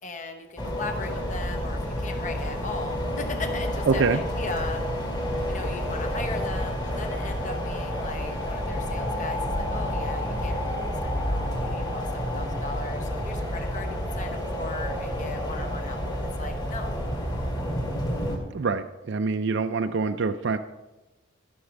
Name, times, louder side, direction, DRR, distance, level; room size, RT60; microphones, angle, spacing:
voice 1, 0.0-4.8 5.5-17.0, left 3 dB, 35° left, 5 dB, 1.0 m, -37 dB
sound 1, 0.6-18.4, equal, 20° left, 2.2 m, -29 dB
voice 2, 3.9-4.2 18.5-20.6, right 4 dB, 55° right, 7 dB, 0.4 m, -25 dB
13.5 x 6.1 x 5.3 m, 1.0 s
head